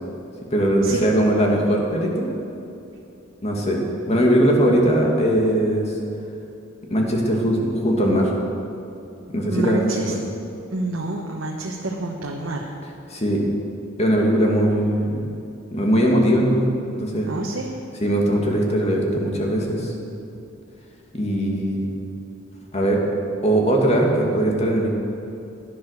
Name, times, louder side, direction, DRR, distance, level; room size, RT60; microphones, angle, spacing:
voice 1, 0.5-2.4 3.4-5.9 6.9-8.3 9.3-10.2 13.1-13.4 14.0-15.2 15.7-16.7 17.0-17.3 18.0-19.9 21.1-21.9 22.7-23.0 23.4-24.9, right 1 dB, 35° left, 0 dB, 2.3 m, -20 dB
voice 2, 9.5-10.1 10.7-12.7 17.2-17.7, right 2 dB, 75° right, 0 dB, 1.2 m, -28 dB
15.5 x 10.5 x 6.6 m, 2.7 s
head